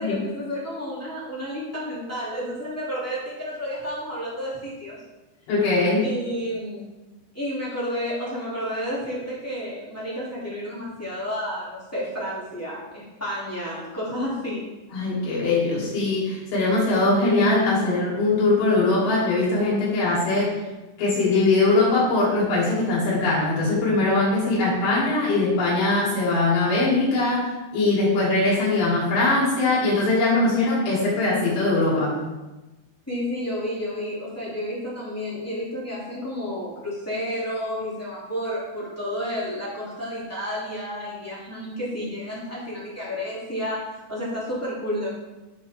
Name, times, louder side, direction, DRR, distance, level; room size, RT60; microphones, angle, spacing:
voice 1, 0.0-4.9 6.0-6.8 7.3-14.6 33.1-45.1, equal, 5° left, -9 dB, 1.1 m, -31 dB
voice 2, 5.5-6.1 14.9-20.6 21.0-32.2, left 2 dB, 75° left, -7 dB, 5.2 m, -21 dB
11.0 x 5.1 x 3.5 m, 1.1 s
omnidirectional pair, 5.1 m